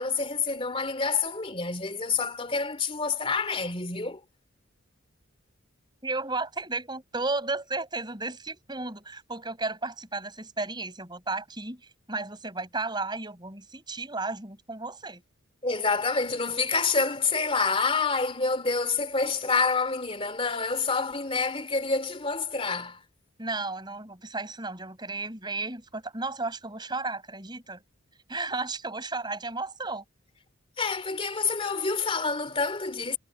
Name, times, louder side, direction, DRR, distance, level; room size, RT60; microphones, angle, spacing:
voice 1, 0.0-4.2 15.6-23.0 30.8-33.2, left 4 dB, 25° left, 2.9 m, -27 dB
voice 2, 6.0-11.8 12.1-15.2 23.4-27.8 28.3-30.0, right 3 dB, 20° right, 5.5 m, -33 dB
head